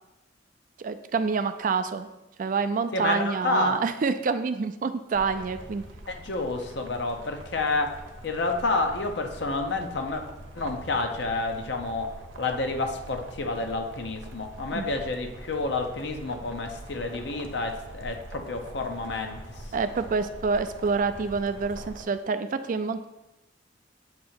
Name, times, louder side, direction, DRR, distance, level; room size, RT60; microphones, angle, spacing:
voice 1, 0.8-2.1 2.4-5.8 14.7-14.9 19.7-23.1, right 4 dB, 45° right, 11 dB, 0.3 m, -27 dB
voice 2, 2.9-3.8 6.1-10.2 10.6-19.7, left 3 dB, 60° left, 4 dB, 0.6 m, -29 dB
sound 1, 5.1-22.0, right 1 dB, 90° right, 0.7 m, -44 dB
7.7 x 2.8 x 4.3 m, 0.96 s
head